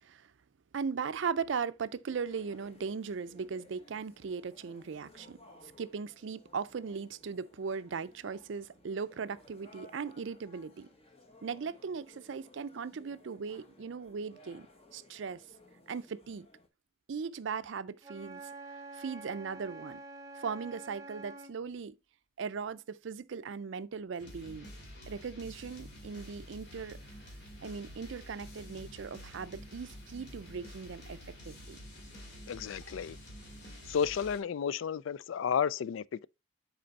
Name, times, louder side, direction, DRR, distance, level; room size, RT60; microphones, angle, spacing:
voice 1, 0.7-10.9 11.4-15.4 15.9-16.5 17.1-20.0 20.4-22.0 22.4-24.7 25.1-27.0 27.6-31.2 31.4-31.8, right 5 dB, 70° right, 0.4 m, -38 dB
sound 1, 2.1-16.7, left 2 dB, 30° left, 1.1 m, -59 dB
Wind instrument woodwind instrument, 18.0-21.6, right 2 dB, 15° right, 0.7 m, -47 dB
sound 2, 24.2-34.4, equal, 55° left, 2.3 m, -49 dB
voice 2, 32.5-33.2 33.9-36.3, left 7 dB, 80° left, 0.3 m, -32 dB
7.7 x 4.3 x 4.0 m
head